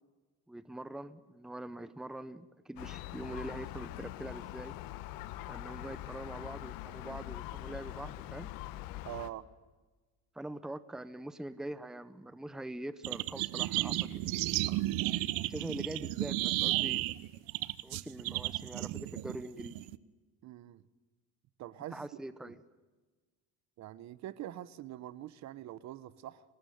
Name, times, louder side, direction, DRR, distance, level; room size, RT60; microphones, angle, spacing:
voice 1, 0.5-4.7 5.5-8.5 10.3-14.4 15.4-17.1 17.8-19.8 21.9-22.6, right 1 dB, ahead, 13 dB, 0.8 m, -43 dB
Gull seagull, 2.8-9.3, left 15 dB, 85° left, 1.4 m, -43 dB
voice 2, 9.0-9.5 20.4-20.8 21.6-22.1 22.5-22.6 23.8-26.4, right 13 dB, 55° right, 17 dB, 1.1 m, -44 dB
sound 1, 13.0-20.0, right 17 dB, 80° right, 1.0 m, -33 dB
25.0 x 20.0 x 9.3 m, 1.3 s
cardioid pair, 155°, 34 cm